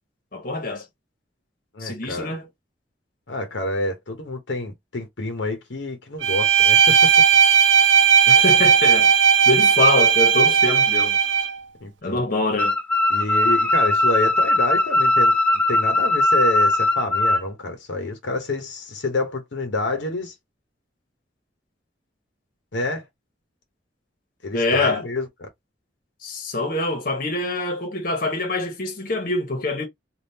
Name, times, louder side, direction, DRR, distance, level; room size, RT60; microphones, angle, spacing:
voice 1, 0.3-0.8 1.8-2.5 8.3-9.1 9.4-11.2 12.0-12.7 24.5-25.0 26.2-29.9, left 2 dB, 50° left, 1.1 m, -24 dB
voice 2, 1.7-2.4 3.3-7.1 11.8-12.2 13.1-15.3 15.7-20.3 22.7-23.0 24.4-25.5, left 2 dB, 75° left, 0.9 m, -28 dB
Bowed string instrument, 6.2-11.6, right 7 dB, 85° right, 0.6 m, -16 dB
sound 1, 12.6-17.4, left 2 dB, 5° left, 0.6 m, -19 dB
3.5 x 2.5 x 2.7 m
head